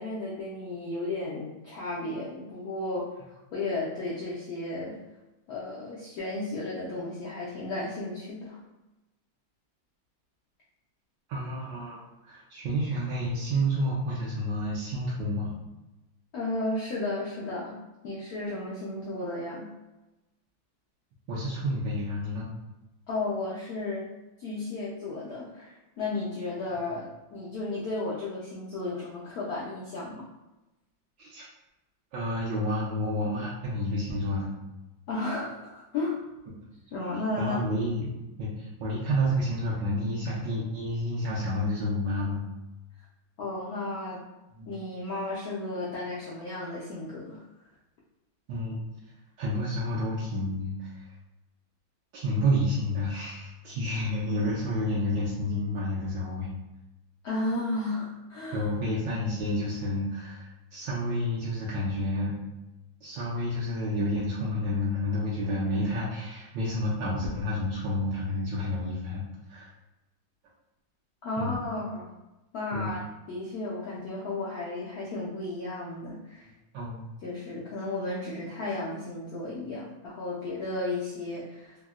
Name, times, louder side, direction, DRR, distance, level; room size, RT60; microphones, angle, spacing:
voice 1, 0.0-5.0 5.5-8.6 16.3-17.8 18.0-19.7 23.1-24.0 24.4-30.3 35.1-36.2 36.9-37.5 43.4-44.2 44.7-47.4 57.2-58.7 71.2-72.1 72.5-73.0 73.3-76.5 77.2-81.8, left 2 dB, 80° left, -6 dB, 0.8 m, -34 dB
voice 2, 11.3-15.5 21.3-22.5 31.2-31.5 32.1-34.5 37.4-38.1 38.4-42.4 44.6-44.7 48.5-48.8 49.4-51.0 52.1-56.5 58.5-62.3 63.0-69.2 69.5-69.7 71.4-71.5 72.7-73.0 76.7-77.1, equal, 75° right, -7 dB, 1.2 m, -30 dB
3.6 x 2.1 x 2.3 m, 1.0 s
omnidirectional pair, 2.2 m